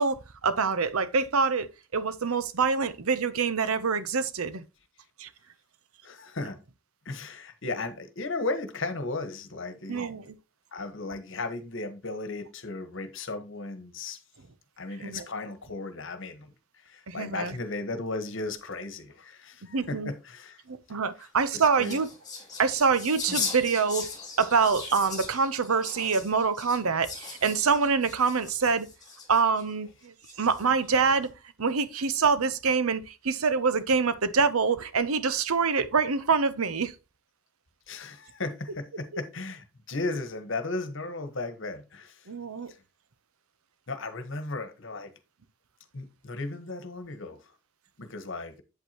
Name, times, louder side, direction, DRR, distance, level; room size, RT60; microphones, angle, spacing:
voice 1, 0.0-4.7 5.2-5.3 9.9-10.2 15.0-15.2 17.1-17.5 19.7-20.1 20.7-22.1 22.6-24.1 24.4-28.9 29.3-31.3 31.6-36.9 42.3-42.7, right 5 dB, 80° right, 0.8 m, -25 dB
voice 2, 6.0-6.6 7.0-10.2 10.7-14.2 14.8-20.6 20.9-22.0 37.9-42.3 42.7-42.8 43.9-45.1 45.9-47.5 48.0-48.6, left 3 dB, 60° left, 1.3 m, -36 dB
sound 1, 21.2-29.6 30.2-30.8, left 4 dB, 20° left, 3.3 m, -38 dB
8.2 x 8.1 x 2.9 m
head